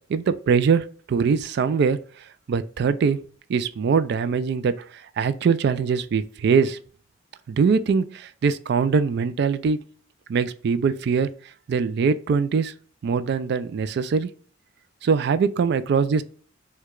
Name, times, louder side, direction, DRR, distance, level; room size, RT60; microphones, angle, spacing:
voice 1, 0.1-2.0 2.5-3.2 3.5-6.8 7.5-9.8 10.3-11.3 11.7-12.7 13.0-14.3 15.0-16.2, right 5 dB, 55° right, 0.3 m, -22 dB
4.5 x 2.2 x 2.3 m
head